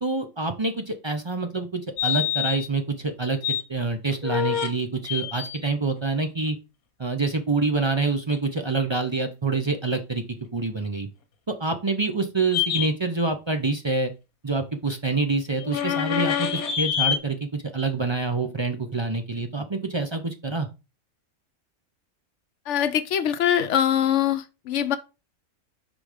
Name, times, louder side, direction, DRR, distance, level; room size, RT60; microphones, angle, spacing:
voice 1, 0.0-6.6 7.0-10.2 10.5-11.1 11.5-14.1 14.4-20.7, right 3 dB, 40° right, 0.4 m, -26 dB
sound 1, 2.0-2.7 3.1-3.6 4.1-4.7 5.0-5.7 12.5-12.9 15.6-17.2, left 10 dB, 85° left, 1.4 m, -26 dB
voice 2, 22.7-25.0, left 9 dB, 65° left, 0.9 m, -23 dB
5.1 x 3.8 x 4.9 m
omnidirectional pair, 1.5 m